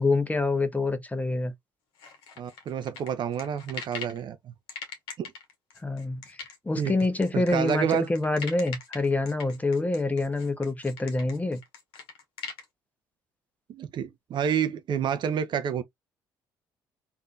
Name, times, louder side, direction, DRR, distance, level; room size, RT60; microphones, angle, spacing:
voice 1, 0.0-1.5 5.8-11.6, left 2 dB, 15° left, 0.8 m, -26 dB
sound 1, 2.0-4.2 4.7-12.6, left 5 dB, 65° left, 1.1 m, -41 dB
voice 2, 2.4-4.5 5.2-5.3 6.8-7.0 7.3-8.1 13.7-15.8, right 8 dB, 45° right, 0.5 m, -29 dB
3.5 x 2.6 x 2.3 m
figure-of-eight pair, 50°, 11 cm